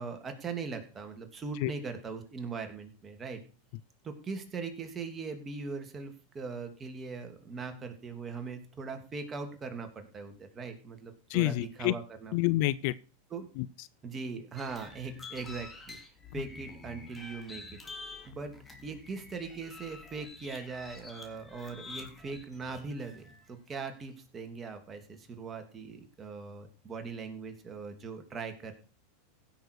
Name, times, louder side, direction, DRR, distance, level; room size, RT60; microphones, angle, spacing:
voice 1, 0.0-3.4 4.0-12.3 13.3-13.5 14.0-16.0 16.3-17.8 18.3-18.5 18.8-28.8, right 4 dB, 25° right, 2.8 m, -40 dB
voice 2, 11.3-11.9 12.3-12.9 13.6-13.9, left 18 dB, 60° left, 0.5 m, -28 dB
sound 1, 14.6-23.5, left 3 dB, 15° left, 3.1 m, -48 dB
16.0 x 6.6 x 4.8 m
hypercardioid pair, 100°, 0 cm